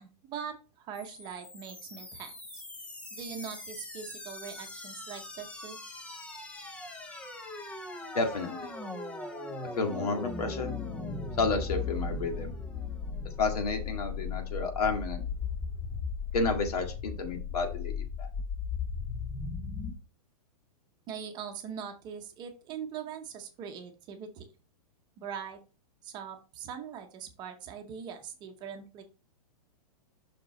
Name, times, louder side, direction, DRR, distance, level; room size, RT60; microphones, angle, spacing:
voice 1, 0.0-2.6 3.1-5.8 21.1-24.5 25.2-25.6 26.0-29.0, right 7 dB, 20° right, 5 dB, 0.9 m, -42 dB
sound 1, 0.9-19.9, left 5 dB, 5° left, 0.5 m, -38 dB
voice 2, 8.1-8.7 9.7-10.7 11.4-12.5 13.4-15.2 16.3-18.3, left 3 dB, 75° left, 4 dB, 2.0 m, -31 dB
6.1 x 5.2 x 4.2 m, 0.33 s
hypercardioid pair, 165°, 20 cm